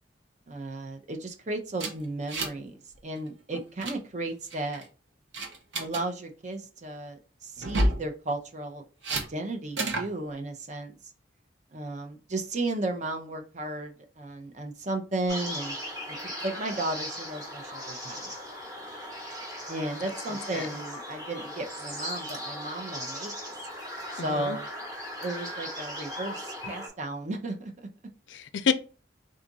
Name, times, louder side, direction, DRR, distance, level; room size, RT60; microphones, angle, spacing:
voice 1, 0.5-4.8 5.8-10.9 11.7-15.8 16.1-18.3 19.7-23.3 24.1-24.7 25.2-27.7, right 2 dB, 40° right, 0.6 m, -34 dB
sound 1, 1.8-2.7 2.9-3.2 3.5-4.0 4.5-4.9 5.3-6.0 7.6-8.0 9.0-9.3 9.8-10.1, right 1 dB, 85° right, 0.8 m, -29 dB
sound 2, 15.3-26.9, equal, 20° right, 1.1 m, -38 dB
voice 2, 20.0-20.7 24.2-24.6 28.3-28.7, left 6 dB, 80° left, 0.4 m, -30 dB
3.8 x 2.4 x 3.9 m
head